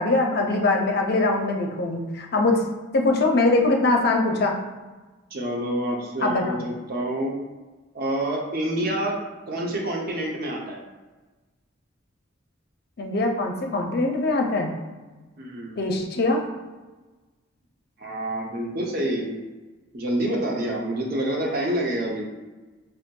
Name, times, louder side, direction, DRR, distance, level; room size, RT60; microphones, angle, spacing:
voice 1, 0.0-2.6 2.9-4.6 6.2-6.6 13.0-14.7 15.8-16.4, left 2 dB, 50° left, 2 dB, 0.5 m, -22 dB
voice 2, 5.3-7.4 7.9-9.2 9.5-10.8 15.4-15.8 18.0-19.4 19.9-22.3, right 1 dB, 45° right, -1 dB, 0.6 m, -27 dB
5.4 x 2.5 x 2.2 m, 1.2 s
head